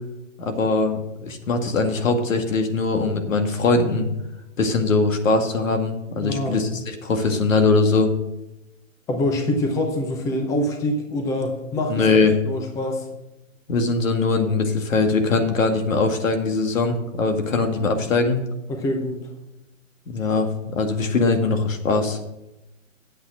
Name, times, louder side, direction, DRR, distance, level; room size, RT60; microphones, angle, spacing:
voice 1, 0.4-4.1 4.6-8.1 11.9-12.3 13.7-18.4 20.1-20.5 20.8-22.2, left 3 dB, 75° left, 5 dB, 2.1 m, -21 dB
voice 2, 6.2-6.6 9.1-13.1 18.7-19.3, left 1 dB, 10° left, 3 dB, 0.7 m, -25 dB
9.2 x 7.8 x 6.1 m, 0.93 s
hypercardioid pair, 145°, 39 cm